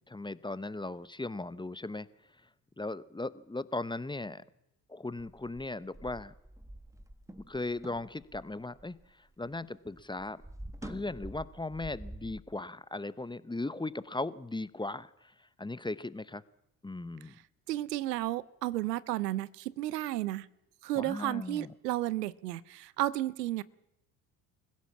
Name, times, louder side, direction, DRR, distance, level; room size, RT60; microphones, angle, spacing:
voice 1, 0.1-2.1 2.8-4.4 4.9-6.3 7.5-10.4 10.8-16.4 16.8-17.4 20.9-21.7, left 2 dB, 10° left, 17 dB, 0.9 m, -38 dB
sound 1, 5.2-9.6 9.9-12.4, right 1 dB, 5° right, 1.7 m, -47 dB
voice 2, 17.7-20.5 20.8-23.6, right 15 dB, 90° right, 21 dB, 0.7 m, -33 dB
25.5 x 16.0 x 7.3 m, 0.87 s
hypercardioid pair, 55°, 47 cm